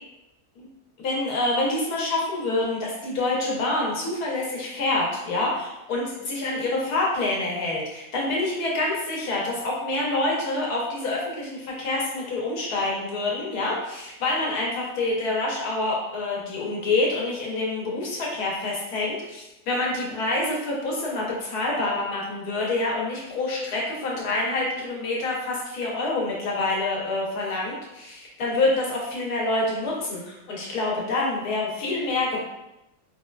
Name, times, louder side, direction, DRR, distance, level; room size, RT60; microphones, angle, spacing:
voice 1, 1.0-32.4, left 2 dB, 85° left, -3 dB, 1.4 m, -27 dB
3.7 x 2.3 x 2.2 m, 0.93 s
omnidirectional pair, 1.6 m